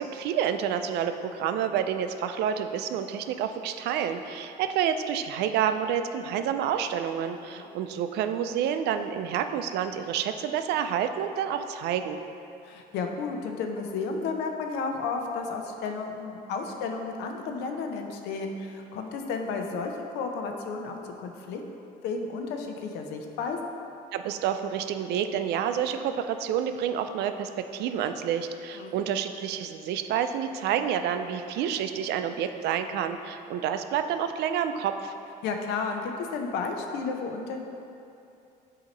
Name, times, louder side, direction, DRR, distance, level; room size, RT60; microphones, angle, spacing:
voice 1, 0.0-12.2 24.1-35.1, right 8 dB, 80° right, 8 dB, 0.4 m, -29 dB
voice 2, 12.6-21.6 22.0-23.7 28.7-29.0 35.4-37.6, left 4 dB, 90° left, 4 dB, 0.6 m, -32 dB
7.9 x 2.9 x 5.2 m, 2.7 s
cardioid pair, 110°, 17 cm